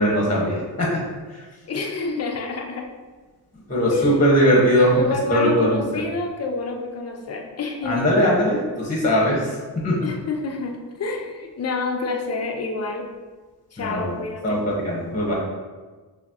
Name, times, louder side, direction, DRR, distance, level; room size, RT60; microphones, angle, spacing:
voice 1, 0.0-1.4 3.7-5.0 5.3-6.0 7.8-10.0 13.8-14.1 14.4-15.3, equal, 20° left, -4 dB, 1.1 m, -20 dB
voice 2, 1.7-2.9 3.9-4.2 4.9-8.1 10.0-13.1 13.7-14.6, left 4 dB, 40° left, 2 dB, 0.6 m, -28 dB
5.9 x 2.1 x 2.9 m, 1.4 s
cardioid pair, 75°, 42 cm